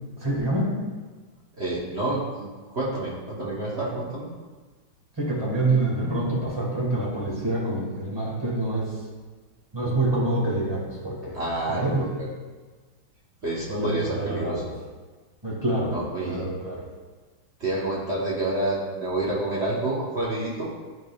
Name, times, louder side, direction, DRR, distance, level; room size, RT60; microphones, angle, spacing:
voice 1, 0.2-0.8 5.2-8.9 9.7-12.1 13.7-14.7 15.4-15.9 16.2-16.9, right 2 dB, 15° right, -4 dB, 1.4 m, -26 dB
voice 2, 1.6-2.5 2.7-4.3 11.3-12.0 13.4-14.6 15.9-16.4 17.6-20.7, right 2 dB, 40° right, -7 dB, 1.1 m, -28 dB
11.0 x 5.1 x 2.3 m, 1.3 s
omnidirectional pair, 2.3 m